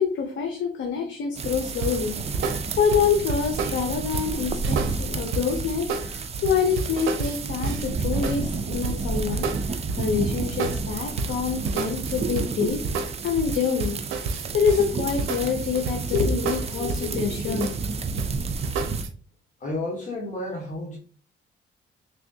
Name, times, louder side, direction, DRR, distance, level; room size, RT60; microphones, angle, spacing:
voice 1, 0.0-17.7, left 6 dB, 70° left, 3 dB, 0.7 m, -26 dB
sound 1, 1.3-19.0, right 4 dB, 30° right, 0.4 m, -31 dB
sound 2, 1.8-10.3 10.6-19.1, right 4 dB, 85° right, 0.6 m, -30 dB
voice 2, 19.6-21.0, left 2 dB, 40° left, -2 dB, 1.1 m, -31 dB
3.4 x 3.4 x 2.7 m, 0.41 s
cardioid pair, 90°, 20 cm